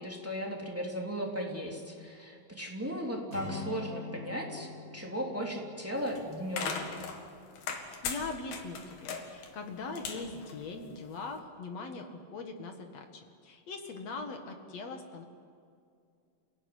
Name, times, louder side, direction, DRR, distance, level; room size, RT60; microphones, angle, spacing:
voice 1, 0.0-6.9, equal, 5° right, -1 dB, 3.0 m, -36 dB
Acoustic guitar, 3.3-7.2, left 3 dB, 25° right, 6.4 m, -44 dB
sound 1, 5.9-11.3, left 5 dB, 80° left, 3.8 m, -39 dB
voice 2, 7.8-15.2, left 3 dB, 55° left, 5 dB, 2.5 m, -41 dB
28.5 x 16.5 x 9.7 m, 2.4 s
omnidirectional pair, 4.1 m